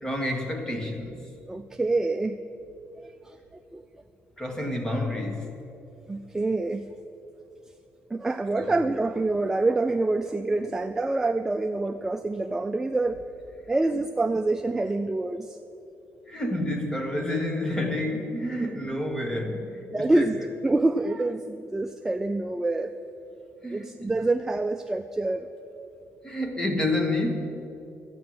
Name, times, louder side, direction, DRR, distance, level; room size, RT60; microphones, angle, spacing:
voice 1, 0.0-1.3 4.4-5.6 8.6-8.8 16.3-20.3 23.6-24.1 26.2-27.4, left 1 dB, 15° left, 4 dB, 1.4 m, -29 dB
voice 2, 1.5-2.4 3.0-3.4 3.7-3.8 6.1-6.9 8.1-13.2 13.7-15.6 19.9-20.4 20.6-22.9 23.7-25.5, right 2 dB, 10° right, 6 dB, 0.3 m, -26 dB
13.0 x 9.2 x 7.8 m, 2.9 s
cardioid pair, 160°, 5 cm